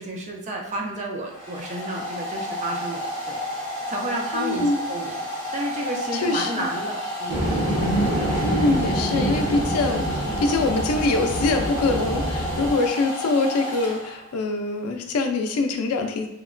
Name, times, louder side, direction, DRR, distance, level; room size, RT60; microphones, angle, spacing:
voice 1, 0.0-3.4 3.9-5.2 5.5-7.5, right 1 dB, 30° right, 0 dB, 0.4 m, -31 dB
Domestic sounds home sounds, 0.7-14.4, equal, 10° left, 0.9 m, -31 dB
voice 2, 4.3-4.8 6.1-6.7 8.4-16.3, left 3 dB, 90° left, 5 dB, 0.4 m, -24 dB
sound 1, 7.3-12.7, right 1 dB, 70° right, 0.7 m, -26 dB
2.9 x 2.1 x 2.4 m, 0.85 s
head